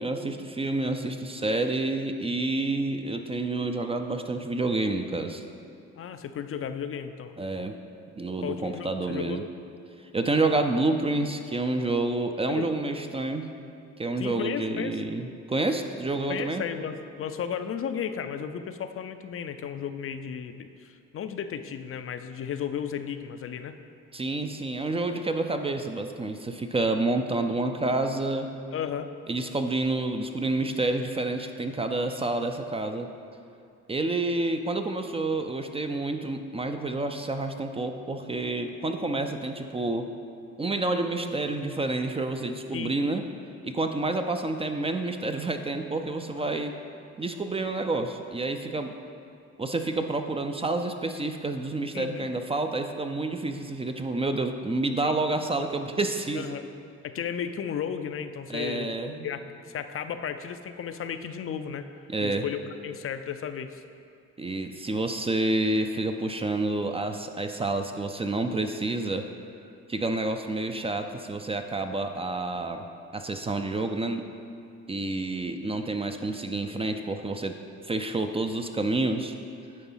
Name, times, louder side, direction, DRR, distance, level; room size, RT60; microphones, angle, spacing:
voice 1, 0.0-5.4 7.4-7.8 8.2-9.4 10.1-13.5 14.0-16.6 24.1-28.5 29.3-33.1 33.9-40.1 40.6-43.2 43.6-46.7 47.2-48.9 49.6-56.5 58.5-59.3 62.1-62.4 64.4-69.3 69.9-72.8 73.1-74.2 74.9-77.6 77.8-79.3, right 2 dB, 20° right, 6 dB, 0.5 m, -29 dB
voice 2, 6.0-7.3 8.4-9.4 12.5-12.7 14.2-15.0 16.3-23.8 28.7-29.1 42.7-42.9 51.9-52.3 55.0-55.1 56.3-56.6 57.0-58.9 59.2-61.9 62.2-63.8, left 8 dB, 45° left, 9 dB, 0.5 m, -34 dB
9.9 x 3.9 x 5.5 m, 2.6 s
cardioid pair, 90°, 30 cm